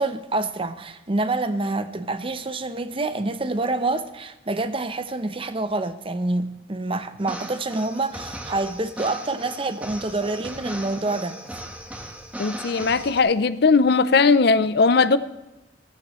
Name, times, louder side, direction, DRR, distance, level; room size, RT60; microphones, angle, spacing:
voice 1, 0.0-11.4, right 2 dB, 30° right, 0.7 m, -27 dB
sound 1, 7.2-13.2, right 1 dB, 10° right, 1.3 m, -37 dB
voice 2, 12.4-15.2, left 4 dB, 60° left, 0.6 m, -18 dB
15.0 x 14.5 x 3.1 m
head